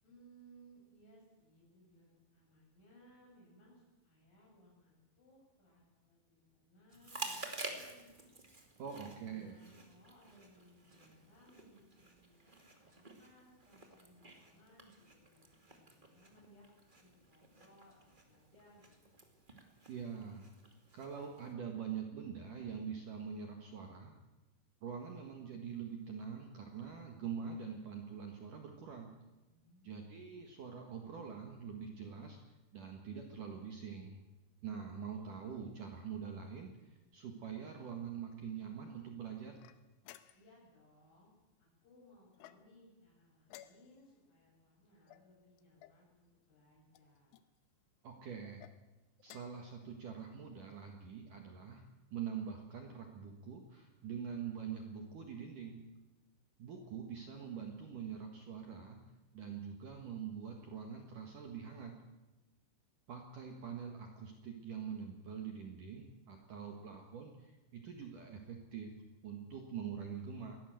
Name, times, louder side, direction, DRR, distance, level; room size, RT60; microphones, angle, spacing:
voice 1, 0.0-8.1 9.2-16.7 17.0-18.9 29.5-30.1 40.3-41.3 41.6-47.3 66.4-66.9, equal, 45° left, -2 dB, 9.6 m, -64 dB
Chewing mastication, 6.9-21.5, right 2 dB, 20° right, 1.2 m, -51 dB
voice 2, 8.8-9.6 19.9-20.5 20.9-24.1 24.8-29.1 29.8-32.4 32.7-34.2 34.6-39.6 48.0-48.7 49.2-51.8 52.1-55.8 56.6-59.0 59.3-62.0 63.1-68.9 69.2-70.6, right 7 dB, 55° right, 3 dB, 2.7 m, -44 dB
sound 1, 39.6-40.7 42.3-42.9 43.5-44.2 45.1-46.0 46.9-47.5 48.4-48.8 49.2-49.7, left 13 dB, 90° left, 3.4 m, -58 dB
21.5 x 17.0 x 7.8 m, 1.1 s
omnidirectional pair, 5.4 m